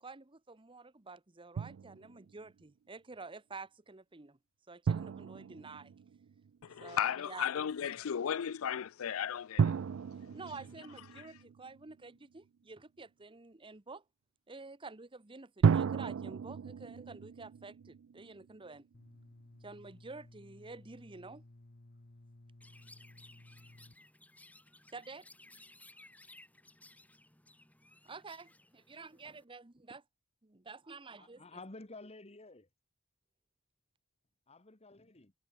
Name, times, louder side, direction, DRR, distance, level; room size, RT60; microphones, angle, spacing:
voice 1, 0.0-4.4 4.7-5.9 6.8-7.5 9.9-10.0 10.3-14.0 14.5-18.9 19.6-21.4 24.9-25.3 28.0-30.0 30.4-31.4, right 3 dB, 25° right, 1.0 m, -49 dB
Drum, 1.6-2.3 4.9-6.6 9.6-12.1 15.6-18.8, right 6 dB, 65° right, 0.4 m, -34 dB
voice 2, 6.6-9.8, left 8 dB, 75° left, 0.4 m, -35 dB
sound 1, 18.9-23.9, left 1 dB, 45° left, 1.2 m, -57 dB
Chirp tweet, 22.6-29.4, left 2 dB, 5° left, 4.1 m, -59 dB
voice 3, 31.2-32.7 34.5-35.3, left 2 dB, 30° left, 1.6 m, -51 dB
head